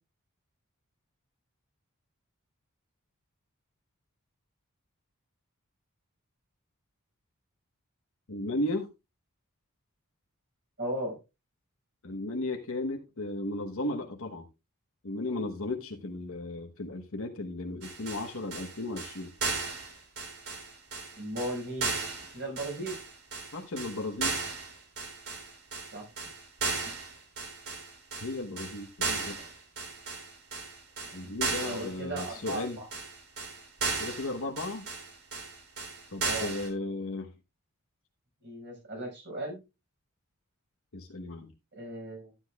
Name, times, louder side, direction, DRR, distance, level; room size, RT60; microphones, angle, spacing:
voice 1, 8.3-8.9 12.0-14.4 15.0-19.3 23.5-24.4 28.2-29.4 31.1-32.8 34.0-34.9 36.1-37.3 40.9-41.5, left 2 dB, 65° left, 1.1 m, -35 dB
voice 2, 10.8-11.2 21.1-21.9 22.3-23.0 25.9-26.1 29.4-29.5 31.2-31.3 31.6-32.9 36.2-36.5 38.4-39.6 41.8-42.3, right 1 dB, 55° right, 5.7 m, -36 dB
sound 1, 17.8-36.7, right 4 dB, 75° right, 3.5 m, -36 dB
12.0 x 9.9 x 2.4 m
head